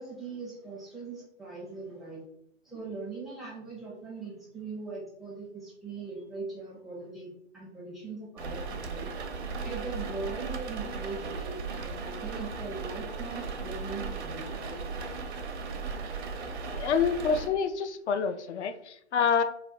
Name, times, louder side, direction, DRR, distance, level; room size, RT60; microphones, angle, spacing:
voice 1, 0.0-2.2 2.6-9.1 9.6-14.8, right 4 dB, ahead, -6 dB, 0.5 m, -40 dB
sound 1, 8.4-17.5, right 4 dB, 65° right, 0.7 m, -36 dB
voice 2, 16.7-19.4, left 6 dB, 70° left, 10 dB, 0.5 m, -27 dB
2.5 x 2.1 x 3.9 m, 0.73 s
figure-of-eight pair, 125°, 36 cm